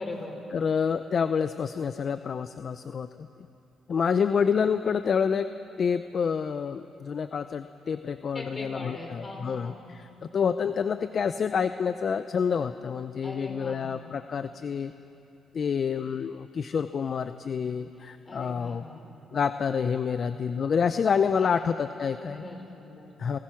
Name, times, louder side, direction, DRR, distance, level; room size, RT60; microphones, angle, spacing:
voice 1, 0.0-0.4 8.3-9.8 13.2-13.9 18.3-19.2 21.3-21.6 22.2-23.1, left 2 dB, 30° left, 1 dB, 5.2 m, -40 dB
voice 2, 0.5-3.3 3.9-5.5 5.8-14.9 15.5-18.8 19.3-22.4 23.2-23.4, left 6 dB, 50° left, 11 dB, 0.6 m, -28 dB
28.5 x 17.5 x 5.9 m, 3.0 s
cardioid pair, 90°, 0 cm